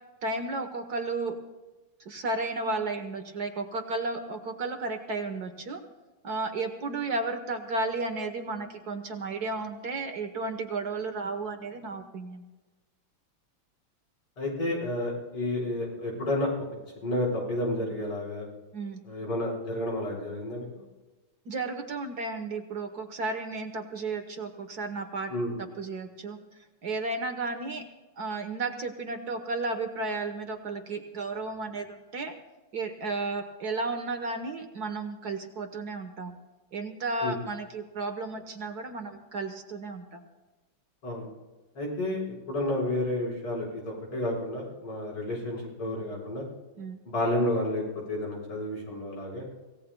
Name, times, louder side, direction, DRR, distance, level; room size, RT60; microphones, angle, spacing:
voice 1, 0.2-1.4 2.0-5.8 6.2-12.4 18.7-19.0 21.4-25.3 25.6-26.4 26.8-27.8 28.2-32.3 32.7-36.4 36.7-40.2 46.8-47.0, right 3 dB, 50° right, 6 dB, 1.5 m, -33 dB
voice 2, 14.4-16.5 17.0-18.5 19.0-20.6 25.3-25.5 37.2-37.4 41.0-41.3 41.8-46.4 47.1-49.5, left 1 dB, 80° left, -3 dB, 6.0 m, -31 dB
25.5 x 17.0 x 2.3 m, 1.2 s
omnidirectional pair, 2.4 m